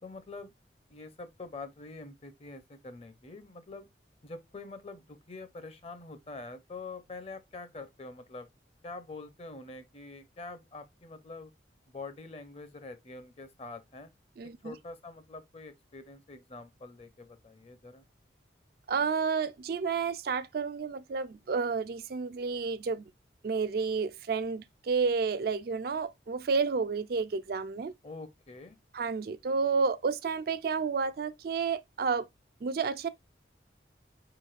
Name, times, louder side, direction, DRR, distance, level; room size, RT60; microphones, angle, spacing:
voice 1, 0.0-0.5 0.9-3.9 4.2-8.5 8.8-11.5 11.9-14.1 14.6-18.0 28.0-28.8, left 3 dB, 30° left, 0.6 m, -45 dB
voice 2, 14.4-14.7 18.9-23.0 23.4-27.9 28.9-32.3 32.6-33.1, right 5 dB, 50° right, 0.3 m, -30 dB
5.0 x 3.8 x 2.4 m
head